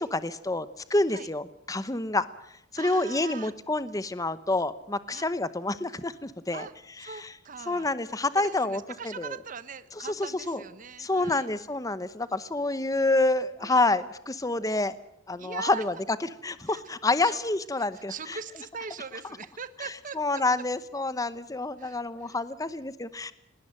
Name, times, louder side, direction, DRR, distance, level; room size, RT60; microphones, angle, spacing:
voice 1, 0.0-2.2 2.7-6.7 7.0-7.3 7.7-9.4 10.0-10.6 11.0-14.9 15.3-15.9 16.2-18.4 20.2-23.3, left 2 dB, 20° left, 14 dB, 0.8 m, -28 dB
voice 2, 2.8-3.5 5.1-5.3 6.5-6.7 7.0-7.9 8.3-11.5 13.6-13.8 15.4-15.8 16.6-16.8 17.2-17.4 17.8-20.4 21.8-22.4, right 5 dB, 40° right, 14 dB, 0.9 m, -41 dB
20.5 x 18.5 x 7.6 m, 0.81 s
head